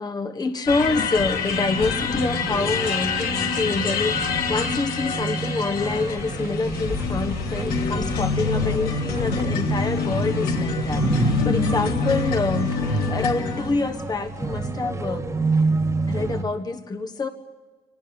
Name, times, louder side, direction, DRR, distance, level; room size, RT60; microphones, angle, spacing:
voice 1, 0.0-12.8 13.1-15.3 16.1-17.3, left 3 dB, 25° left, 7 dB, 1.3 m, -26 dB
sound 1, 0.7-13.7, left 5 dB, 60° left, 2.9 m, -26 dB
sound 2, 1.7-16.4, right 3 dB, 20° right, 1.7 m, -29 dB
24.5 x 19.5 x 8.9 m, 1.3 s
cardioid pair, 110°, 17 cm